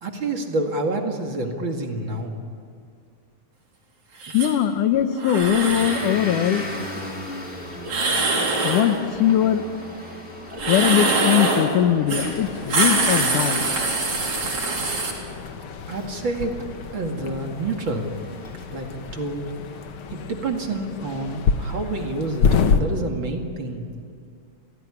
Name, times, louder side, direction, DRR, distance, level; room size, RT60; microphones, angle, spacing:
voice 1, 0.0-2.4 15.9-16.6 16.9-18.4 18.7-19.5 20.1-23.9, right 2 dB, 40° right, 3 dB, 2.5 m, -28 dB
sound 1, 4.2-4.5 5.2-6.1 7.8-8.9 10.5-11.7 12.1-12.3 12.6-15.1, right 3 dB, 60° right, 5.3 m, -23 dB
voice 2, 4.3-6.7 8.6-9.6 10.7-13.7, left 10 dB, 85° left, 10 dB, 2.6 m, -21 dB
Motor vehicle (road) / Engine, 5.4-19.6, left 1 dB, 20° left, 2.9 m, -38 dB
sound 2, 12.1-22.8, left 5 dB, 55° left, 1.7 m, -28 dB
30.0 x 16.5 x 9.9 m, 2.3 s
omnidirectional pair, 3.6 m